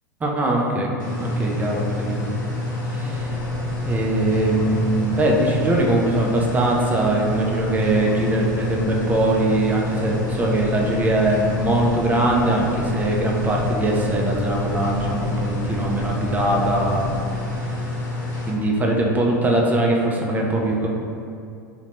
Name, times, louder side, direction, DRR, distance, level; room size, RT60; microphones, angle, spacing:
voice 1, 0.2-0.9 1.2-2.3 2.9-3.3 3.8-17.0 17.5-17.7 18.5-20.9, right 1 dB, 15° right, -1 dB, 0.4 m, -21 dB
sound 1, 1.0-18.5, left 2 dB, 80° left, 0.7 m, -28 dB
sound 2, 3.0-17.2, equal, 75° right, 0.7 m, -35 dB
2.8 x 2.1 x 2.9 m, 2.5 s
figure-of-eight pair, 85°, 10 cm